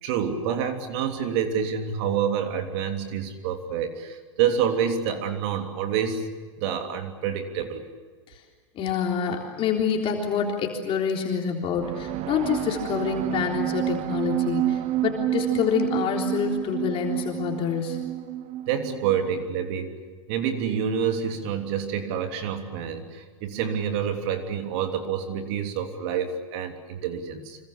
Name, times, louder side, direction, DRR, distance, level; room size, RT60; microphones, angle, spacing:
voice 1, 0.0-6.3 6.6-7.9 18.7-19.9 20.3-27.6, right 8 dB, 60° right, 5 dB, 3.2 m, -27 dB
voice 2, 8.8-18.0, left 7 dB, 35° left, 1 dB, 3.7 m, -27 dB
sound 1, 11.7-19.3, right 13 dB, 40° right, 1.0 m, -29 dB
26.0 x 22.0 x 8.6 m, 1.5 s
hypercardioid pair, 120°, 16 cm